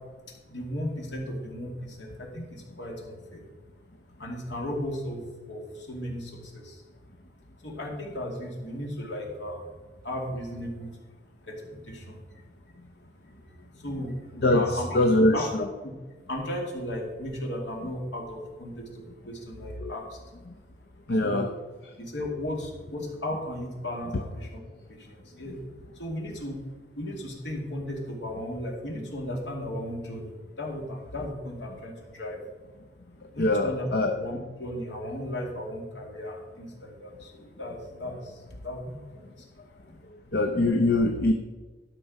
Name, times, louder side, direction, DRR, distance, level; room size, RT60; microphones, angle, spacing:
voice 1, 0.5-3.4 4.2-5.2 5.5-6.8 7.6-9.7 10.0-11.0 11.4-12.4 13.8-15.0 15.3-15.5 15.8-15.9 16.3-20.2 21.2-21.5 22.0-24.6 24.9-25.6 25.9-26.6 27.0-32.4 33.3-33.9 34.1-39.5 39.9-40.0, left 1 dB, 75° left, -1 dB, 2.5 m, -36 dB
voice 2, 14.9-15.5 19.8-19.9 21.1-21.5 33.4-34.2 40.3-41.3, left 2 dB, 60° left, 4 dB, 0.7 m, -22 dB
12.5 x 6.1 x 5.4 m, 1.3 s
head